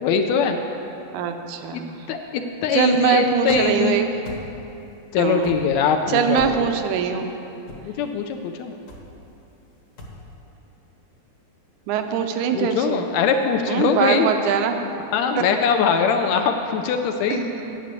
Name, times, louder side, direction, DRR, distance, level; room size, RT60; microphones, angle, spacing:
voice 1, 0.0-0.6 1.7-1.8 2.1-2.2 2.6-4.0 5.1-6.4 7.8-8.7 12.5-14.3 15.1-17.5, left 6 dB, 80° left, 5 dB, 1.7 m, -21 dB
voice 2, 1.1-2.1 2.7-4.1 5.2-5.6 6.1-7.3 11.9-13.0 13.7-14.8 17.3-17.8, right 7 dB, 80° right, 6 dB, 2.1 m, -22 dB
sound 1, 3.4-3.9 4.2-4.7 5.4-5.9 6.2-6.9 7.7-8.0 8.9-9.2 10.0-10.3, left 2 dB, 45° left, 1.1 m, -37 dB
10.0 x 6.3 x 8.3 m, 2.9 s
omnidirectional pair, 3.5 m